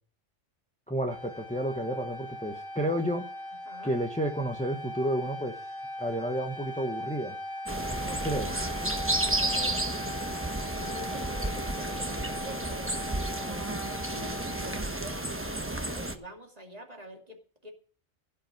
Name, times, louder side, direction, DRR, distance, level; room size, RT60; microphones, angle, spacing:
voice 1, 0.9-3.3 3.8-5.6 6.0-7.3 8.2-8.5, right 1 dB, 5° left, 3 dB, 1.1 m, -31 dB
sound 1, 1.1-14.8, left 1 dB, 40° left, 2.5 m, -40 dB
voice 2, 3.7-4.0 8.0-8.5 9.4-9.9 10.8-17.7, equal, 30° right, 2 dB, 2.5 m, -46 dB
sound 2, 7.7-16.1, right 1 dB, 10° right, 1.0 m, -32 dB
16.0 x 5.7 x 9.3 m, 0.43 s
omnidirectional pair, 1.2 m